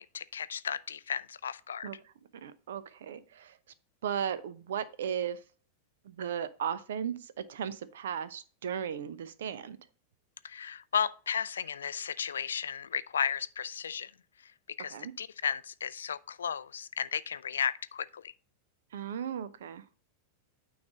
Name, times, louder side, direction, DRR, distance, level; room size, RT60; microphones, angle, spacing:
voice 1, 0.0-1.9 10.4-14.1 14.4-14.5 14.8-18.3, left 7 dB, 70° left, 0.3 m, -34 dB
voice 2, 2.4-3.6 4.0-5.4 6.1-9.8 14.9-15.1 18.9-19.8, right 8 dB, 60° right, 0.5 m, -36 dB
9.3 x 3.2 x 4.8 m
figure-of-eight pair, 90°, 0 cm